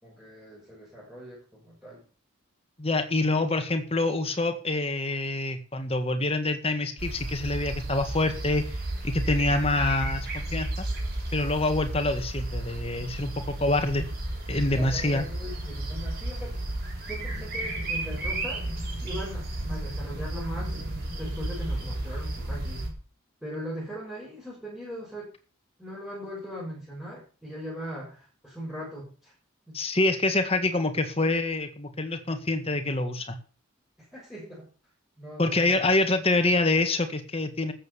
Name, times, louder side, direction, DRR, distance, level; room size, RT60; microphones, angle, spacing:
voice 1, 0.0-2.0 14.6-16.6 17.1-18.7 19.0-20.8 21.2-22.8 23.4-25.3 25.8-29.3 29.7-29.8 34.0-34.7 35.2-35.7, equal, ahead, -7 dB, 6.5 m, -40 dB
voice 2, 2.8-10.7 11.3-14.1 14.5-15.3 29.7-33.4 35.4-37.7, left 2 dB, 30° left, 7 dB, 1.9 m, -26 dB
sound 1, 7.0-22.9, right 1 dB, 45° right, 6.6 m, -33 dB
13.5 x 8.1 x 7.1 m, 0.39 s
head